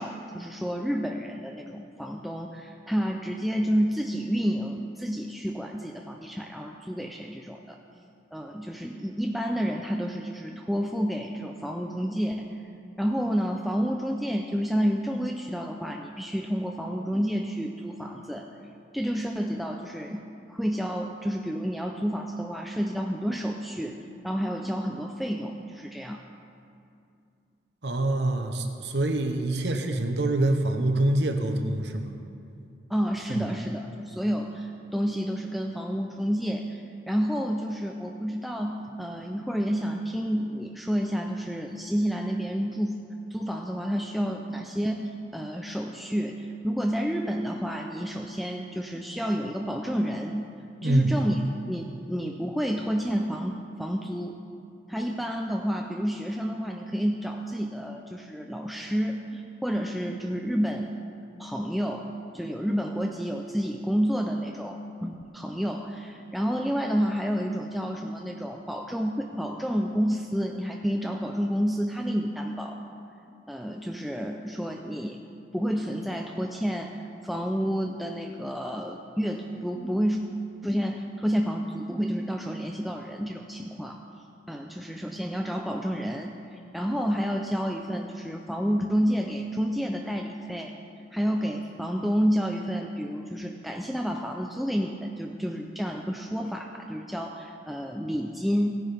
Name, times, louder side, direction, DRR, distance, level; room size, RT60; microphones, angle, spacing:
voice 1, 0.0-7.8 8.3-12.5 13.0-18.5 18.9-20.2 20.5-24.0 24.2-26.2 32.9-43.0 43.3-45.0 45.3-50.5 50.8-51.4 51.7-54.4 54.9-60.9 61.4-72.8 73.5-75.2 75.5-77.0 77.2-80.2 80.6-84.0 84.5-90.7 91.1-98.8, equal, ahead, 2 dB, 0.4 m, -30 dB
voice 2, 27.8-32.1 33.3-33.4 50.8-51.1, right 1 dB, 75° right, 5 dB, 0.9 m, -25 dB
16.5 x 9.9 x 3.5 m, 2.5 s
head